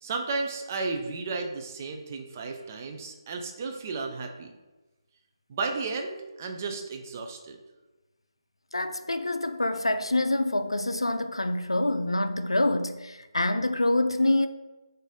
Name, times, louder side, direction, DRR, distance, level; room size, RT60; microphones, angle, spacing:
voice 1, 0.0-4.5 5.5-7.6, right 4 dB, 30° right, 0.4 m, -33 dB
voice 2, 8.7-14.5, left 1 dB, 80° left, 0.4 m, -26 dB
4.0 x 2.6 x 3.6 m
figure-of-eight pair, 150°, 3 cm